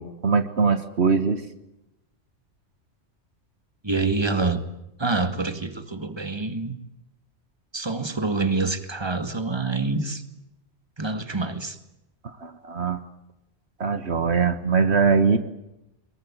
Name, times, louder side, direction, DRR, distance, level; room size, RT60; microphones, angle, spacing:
voice 1, 0.0-1.4 12.4-13.0 13.8-15.4, right 5 dB, 60° right, 10 dB, 1.6 m, -22 dB
voice 2, 3.8-4.6 5.0-6.8 7.7-10.2 11.0-11.8, right 3 dB, 20° right, 10 dB, 2.0 m, -26 dB
24.0 x 22.5 x 8.9 m, 0.90 s
omnidirectional pair, 1.2 m